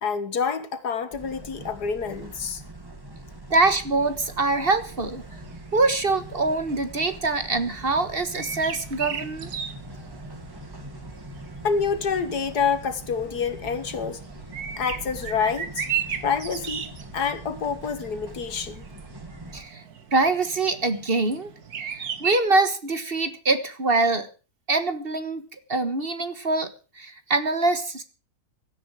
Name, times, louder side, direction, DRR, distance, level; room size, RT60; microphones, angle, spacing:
voice 1, 0.0-2.6 11.6-14.2 14.8-15.9 16.2-18.8, left 6 dB, 85° left, 2.1 m, -27 dB
sound 1, 1.1-19.6, right 1 dB, 15° right, 2.1 m, -43 dB
voice 2, 3.5-5.2 5.7-9.5 19.5-19.8 20.1-21.5 21.8-24.3 24.7-25.4 25.7-26.7 27.0-28.0, right 3 dB, 40° right, 1.6 m, -24 dB
sound 2, 3.6-22.4, right 7 dB, 75° right, 1.9 m, -37 dB
17.0 x 13.0 x 4.9 m
omnidirectional pair, 1.6 m